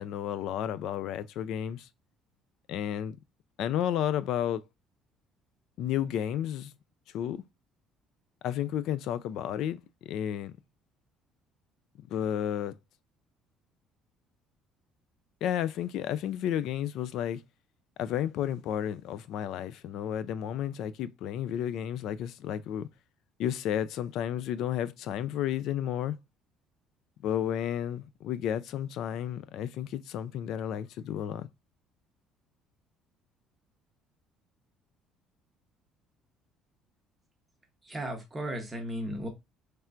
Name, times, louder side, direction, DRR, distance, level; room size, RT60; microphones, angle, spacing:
voice 1, 0.0-1.9 2.7-3.2 3.6-4.6 5.8-6.7 7.1-7.4 8.4-9.8 10.1-10.5 12.1-12.7 15.4-17.4 18.0-22.9 23.4-26.2 27.2-31.5, left 10 dB, 60° left, 0.3 m, -32 dB
voice 2, 37.9-39.3, right 1 dB, 10° right, 0.8 m, -35 dB
4.3 x 3.3 x 2.4 m
cardioid pair, 165°, 0 cm